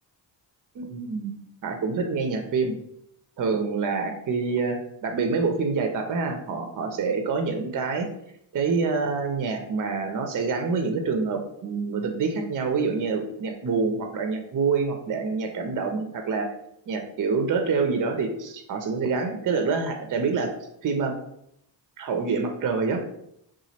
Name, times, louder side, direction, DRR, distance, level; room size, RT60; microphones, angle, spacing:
voice 1, 0.8-1.4 1.6-2.8 3.4-4.8 5.0-8.1 8.5-16.5 16.9-20.5 20.8-21.1 22.0-23.0, right 4 dB, 45° right, 5 dB, 0.6 m, -26 dB
2.9 x 2.4 x 4.2 m, 0.75 s
cardioid pair, 95°, 44 cm